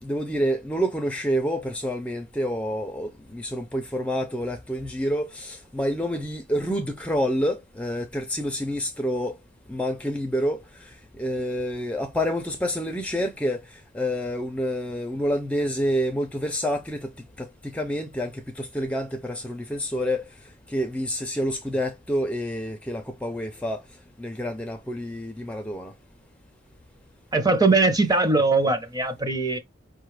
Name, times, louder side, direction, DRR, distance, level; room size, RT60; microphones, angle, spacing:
voice 1, 0.0-9.4 9.7-17.1 17.4-23.8 24.2-25.9, equal, 5° left, 0.4 m, -28 dB
voice 2, 27.3-29.6, right 3 dB, 20° right, 0.7 m, -21 dB
5.2 x 2.4 x 3.1 m
head